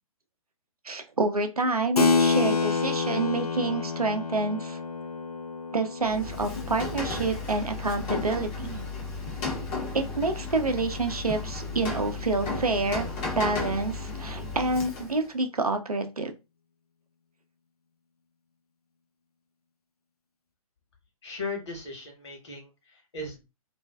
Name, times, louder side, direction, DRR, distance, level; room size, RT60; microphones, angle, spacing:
voice 1, 0.8-4.8 5.7-8.8 9.9-16.3, right 3 dB, 80° right, 6 dB, 0.6 m, -28 dB
Keyboard (musical), 2.0-8.0, left 4 dB, 90° left, 0.4 m, -28 dB
Rain, 6.0-15.3, left 3 dB, 20° left, 0.6 m, -34 dB
voice 2, 21.2-23.4, left 3 dB, 50° left, 1 dB, 1.1 m, -37 dB
2.4 x 2.2 x 2.2 m, 0.27 s
figure-of-eight pair, 125°, 19 cm